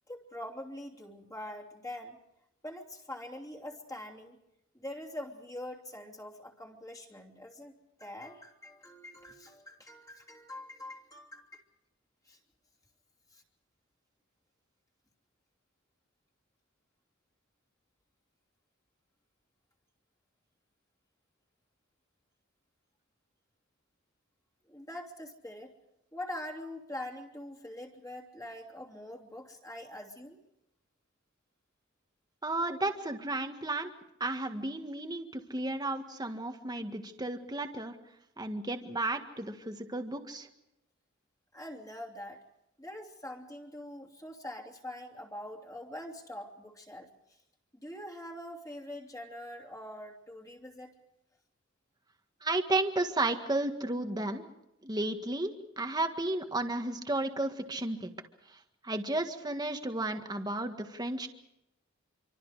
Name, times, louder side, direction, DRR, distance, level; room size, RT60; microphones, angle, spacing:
voice 1, 0.1-2.2 2.6-4.4 4.7-7.7 8.0-11.6 12.2-12.4 13.3-13.4 24.6-25.7 26.1-30.4 41.5-42.4 42.8-47.4 47.8-50.9, left 1 dB, 15° left, -1 dB, 3.0 m, -44 dB
voice 2, 32.4-33.9 34.2-38.0 38.4-40.5 52.4-54.4 54.8-58.1 58.5-58.6 58.8-61.3, right 2 dB, 20° right, 6 dB, 1.7 m, -33 dB
26.5 x 25.0 x 5.0 m, 0.83 s
head